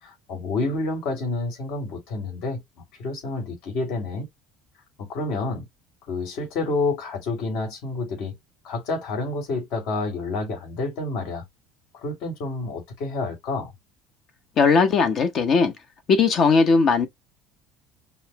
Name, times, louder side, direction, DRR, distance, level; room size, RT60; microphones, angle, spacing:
voice 1, 0.0-2.6 3.0-4.3 5.0-5.7 6.1-8.4 8.6-11.4 11.9-13.7, left 3 dB, 65° left, 2.4 m, -29 dB
voice 2, 14.6-15.7 16.1-17.1, left 5 dB, 45° left, 0.9 m, -18 dB
5.5 x 2.1 x 2.9 m
cardioid pair, 130°, 0 cm